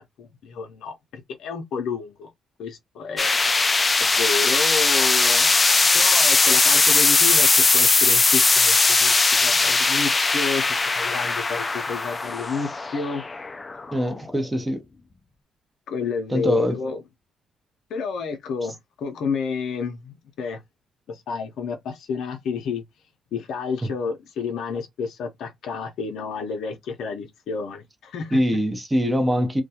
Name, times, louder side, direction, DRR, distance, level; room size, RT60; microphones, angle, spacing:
voice 1, 0.0-2.3 2.6-3.7 4.0-5.6 5.9-13.2 15.9-17.0 17.9-20.6 21.1-22.8 23.3-28.4, left 5 dB, 75° left, 0.5 m, -30 dB
sound 1, 3.2-14.3, left 3 dB, 30° left, 0.3 m, -19 dB
voice 2, 13.9-14.8 16.3-16.8 23.8-23.9 28.3-29.6, equal, 15° right, 0.7 m, -23 dB
2.2 x 2.2 x 2.7 m
cardioid pair, 80°, 0 cm